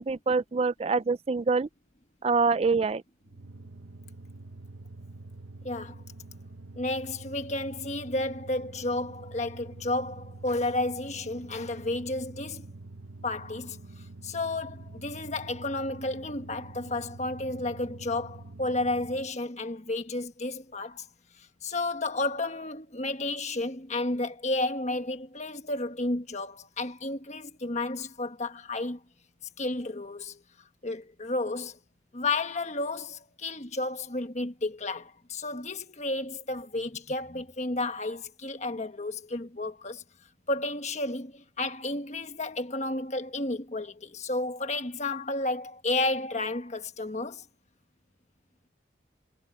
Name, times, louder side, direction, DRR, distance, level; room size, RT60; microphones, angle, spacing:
voice 1, 0.0-1.7 2.2-3.0, right 4 dB, 30° right, 0.3 m, -25 dB
sound 1, 3.3-19.4, right 2 dB, 90° right, 1.2 m, -46 dB
voice 2, 5.6-6.0 6.7-12.7 13.2-13.8 14.2-21.1 21.4-29.0 29.6-30.4 30.8-31.8 32.1-40.0 40.5-47.4, left 2 dB, 35° left, 1.4 m, -32 dB
head